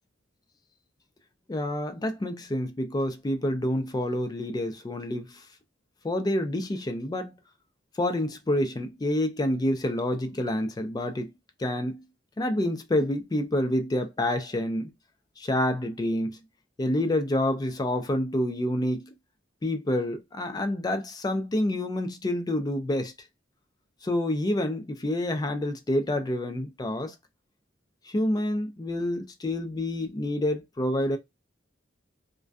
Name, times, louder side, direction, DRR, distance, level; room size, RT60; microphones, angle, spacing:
voice 1, 1.5-5.4 6.0-7.3 8.0-11.3 11.6-12.0 12.4-14.9 15.4-16.4 16.8-19.1 19.6-23.1 24.0-27.1 28.1-31.2, left 1 dB, 20° left, 0.4 m, -28 dB
2.5 x 2.2 x 2.2 m
head